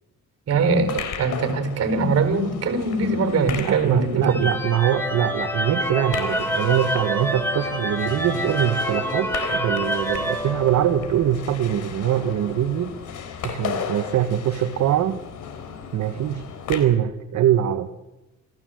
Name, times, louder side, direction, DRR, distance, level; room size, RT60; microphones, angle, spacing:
voice 1, 0.5-4.5, right 4 dB, 55° right, 8 dB, 4.5 m, -22 dB
sound 1, 0.6-16.8, left 7 dB, 80° left, 3.8 m, -36 dB
voice 2, 3.5-12.9 13.4-15.2 15.9-17.9, right 11 dB, 70° right, 8 dB, 1.3 m, -23 dB
sound 2, 4.2-11.2, equal, 5° left, 3.9 m, -27 dB
27.5 x 15.0 x 7.8 m, 1.0 s
cardioid pair, 90°, 30 cm